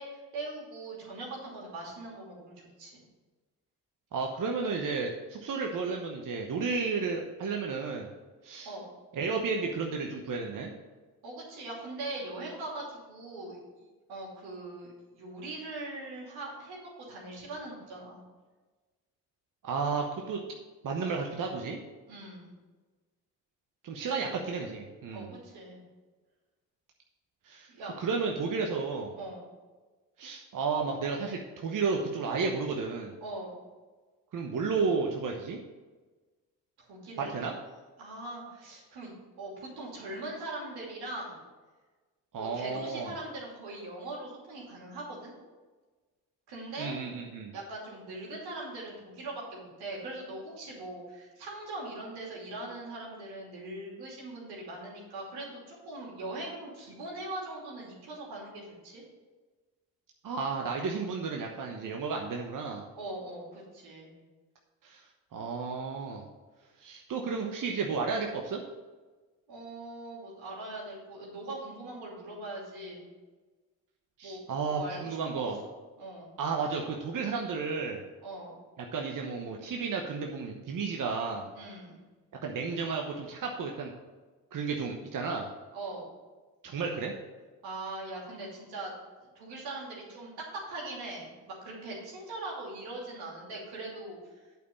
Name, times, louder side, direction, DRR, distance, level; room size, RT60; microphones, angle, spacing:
voice 1, 0.0-3.0 8.6-8.8 11.2-13.6 14.1-18.2 22.1-22.5 24.2-24.3 25.1-25.8 27.7-27.9 29.2-29.5 33.2-33.6 36.8-37.3 38.0-41.4 42.4-45.3 46.5-47.0 47.5-59.0 62.9-64.1 69.5-73.1 74.2-74.4 74.7-75.5 76.0-76.3 78.2-78.5 81.5-82.0 85.7-86.1 87.6-88.9 89.2-94.2, right 2 dB, 85° right, -3 dB, 2.8 m, -41 dB
voice 2, 4.1-8.1 8.4-8.7 9.1-10.7 19.6-20.4 20.8-21.8 23.8-25.3 27.4-27.7 28.0-29.1 30.2-33.2 34.3-35.6 37.2-37.5 42.3-43.1 46.8-47.5 60.2-62.8 64.8-65.0 65.3-66.2 66.8-68.6 74.2-75.6 76.4-78.0 78.9-81.5 82.4-83.9 84.5-85.5 86.6-87.1, right 4 dB, 55° right, 1 dB, 1.0 m, -32 dB
8.2 x 4.5 x 7.1 m, 1.3 s
supercardioid pair, 55°, 37 cm